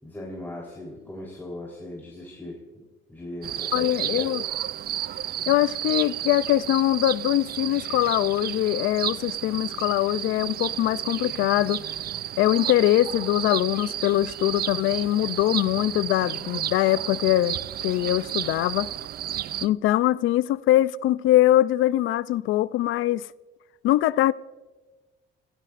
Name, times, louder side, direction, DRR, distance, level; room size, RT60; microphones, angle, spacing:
voice 1, 0.0-2.6 3.1-4.3, left 1 dB, 10° left, 3.6 m, -38 dB
sound 1, 3.4-19.7, right 11 dB, 50° right, 0.4 m, -32 dB
voice 2, 3.7-4.4 5.5-11.8 12.4-17.6 17.8-18.9 19.6-23.3 23.8-24.3, left 14 dB, 85° left, 0.4 m, -22 dB
29.0 x 16.5 x 2.5 m
cardioid pair, 90°, 20 cm